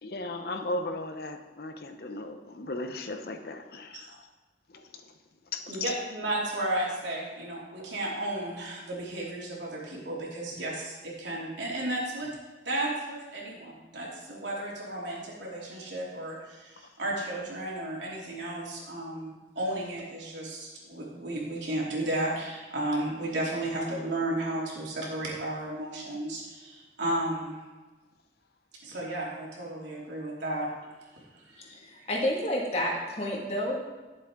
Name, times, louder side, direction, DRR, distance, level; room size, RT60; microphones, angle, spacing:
voice 1, 0.0-4.2 4.7-4.9 5.5-6.0, left 2 dB, 55° left, 6 dB, 0.8 m, -36 dB
voice 2, 5.7-12.3 12.6-27.6 28.8-30.7 31.1-31.4, right 1 dB, 90° right, -4 dB, 2.9 m, -33 dB
voice 3, 31.5-33.8, left 1 dB, 35° left, -2 dB, 1.8 m, -30 dB
11.5 x 7.5 x 3.7 m, 1.2 s
head